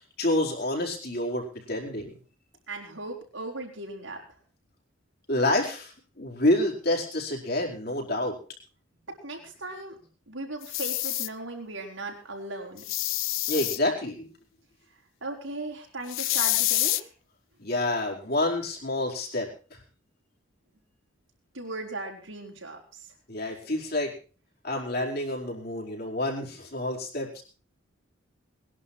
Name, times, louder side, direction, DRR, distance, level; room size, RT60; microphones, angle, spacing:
voice 1, 0.2-2.1 5.3-8.4 13.5-14.3 17.6-19.5 23.3-24.1 24.6-27.4, left 1 dB, 50° left, -1 dB, 4.9 m, -28 dB
voice 2, 2.7-4.2 9.1-10.0 10.3-12.8 15.2-17.1 21.5-23.1, right 2 dB, 75° right, 1 dB, 4.8 m, -37 dB
sound 1, 10.6-11.3 12.8-13.8 16.1-17.0, left 17 dB, 85° left, 0.6 m, -27 dB
21.0 x 11.5 x 4.6 m, 0.36 s
head